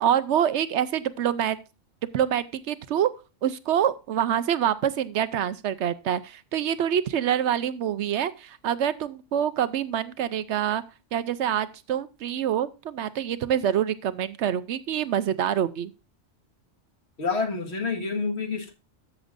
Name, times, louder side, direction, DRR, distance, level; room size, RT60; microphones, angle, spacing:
voice 1, 0.0-1.6 2.1-3.1 3.4-10.8 11.1-15.9, right 9 dB, 70° right, 15 dB, 0.9 m, -26 dB
voice 2, 17.2-18.7, left 4 dB, 60° left, 4 dB, 1.8 m, -28 dB
13.0 x 7.0 x 2.5 m, 0.31 s
omnidirectional pair, 1.3 m